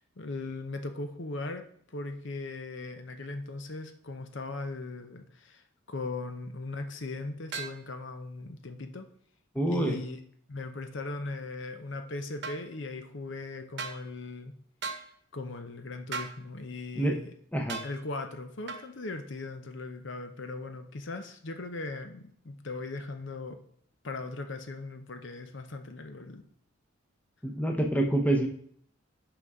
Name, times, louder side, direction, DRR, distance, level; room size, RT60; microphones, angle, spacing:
voice 1, 0.0-9.0 9.7-10.2 10.5-14.5 15.3-17.3 17.8-23.6 24.0-26.4, left 3 dB, 60° left, 8 dB, 0.7 m, -39 dB
sound 1, 7.5-7.8 12.4-12.6 13.8-14.0 14.8-15.1 16.1-16.4 17.7-17.9 18.7-18.9, right 5 dB, 55° right, 1.0 m, -36 dB
voice 2, 9.5-10.0 16.9-17.2 17.5-17.8 27.4-28.5, right 1 dB, 5° left, 3 dB, 0.8 m, -26 dB
6.0 x 5.5 x 4.8 m, 0.62 s
head